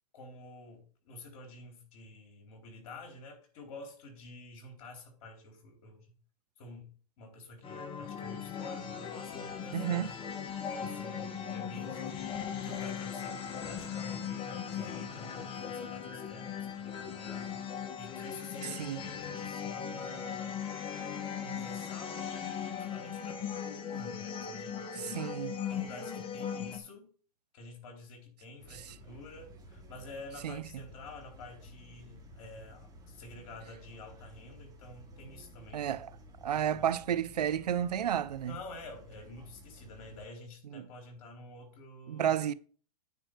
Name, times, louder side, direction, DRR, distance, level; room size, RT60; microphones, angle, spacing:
voice 1, 0.1-6.1 6.6-6.9 7.2-10.2 10.8-13.4 13.6-17.5 18.0-20.7 21.4-25.2 25.7-27.1 27.5-36.0 36.5-36.9 38.4-42.4, left 2 dB, 60° left, 4.0 m, -49 dB
sound 1, 7.6-26.8, left 7 dB, 25° left, 1.3 m, -38 dB
voice 2, 9.7-10.1 18.6-19.0 25.0-25.5 30.4-30.6 35.7-36.1 36.4-38.6 40.7-40.9 42.1-42.5, right 10 dB, 85° right, 0.6 m, -31 dB
sound 2, 28.6-40.3, equal, 20° right, 3.0 m, -53 dB
9.3 x 4.3 x 6.5 m
hypercardioid pair, 120°, 20 cm